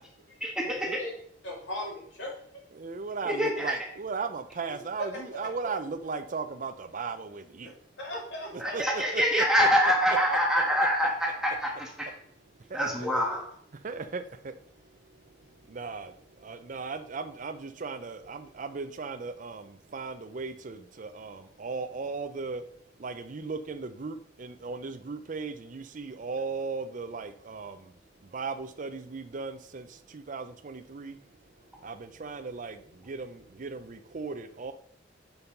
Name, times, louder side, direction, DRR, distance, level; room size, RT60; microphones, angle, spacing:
voice 1, 0.4-1.0 3.2-3.7 8.6-12.1 12.7-13.4, equal, 5° right, -1 dB, 1.7 m, -25 dB
voice 2, 1.4-2.6 5.0-5.2 5.6-5.8 8.0-8.8 10.0-10.1 12.8-13.4, left 1 dB, 75° left, -2 dB, 3.0 m, -38 dB
voice 3, 2.8-7.7 8.7-9.4 13.8-14.5 15.7-16.1 16.4-22.6 23.0-27.9 28.3-29.9 30.1-31.2 31.8-32.8 33.0-34.7, right 4 dB, 45° right, 11 dB, 0.5 m, -37 dB
7.0 x 5.4 x 5.3 m, 0.68 s
head